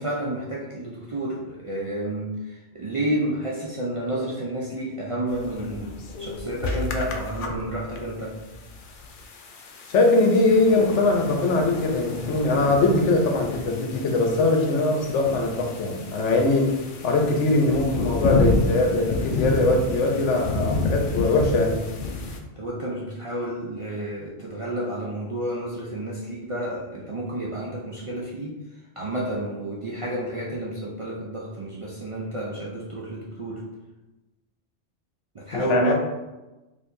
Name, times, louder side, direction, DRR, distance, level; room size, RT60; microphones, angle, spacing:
voice 1, 0.0-8.4 22.6-28.6 29.0-33.6 35.3-35.9, right 1 dB, 55° right, -5 dB, 0.3 m, -30 dB
sound 1, 5.3-22.4, left 2 dB, 60° left, 0.6 m, -30 dB
voice 2, 9.9-16.7 17.0-21.8 35.5-35.9, left 2 dB, 80° left, 2 dB, 1.0 m, -21 dB
4.5 x 2.6 x 2.5 m, 1.1 s
omnidirectional pair, 1.2 m